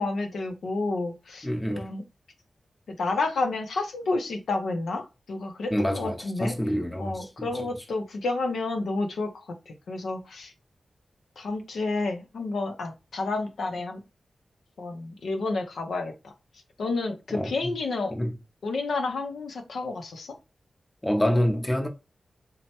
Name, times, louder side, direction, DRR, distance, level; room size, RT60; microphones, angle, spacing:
voice 1, 0.0-2.0 2.9-6.5 7.0-9.3 9.7-10.5 11.4-14.0 14.8-16.3 16.8-18.1 18.6-20.3, left 3 dB, 90° left, 0.5 m, -30 dB
voice 2, 1.4-1.9 5.7-7.7 17.3-17.7 18.1-18.3 21.0-21.9, equal, 15° left, 0.6 m, -27 dB
3.1 x 2.1 x 2.8 m
cardioid pair, 70°, 0 cm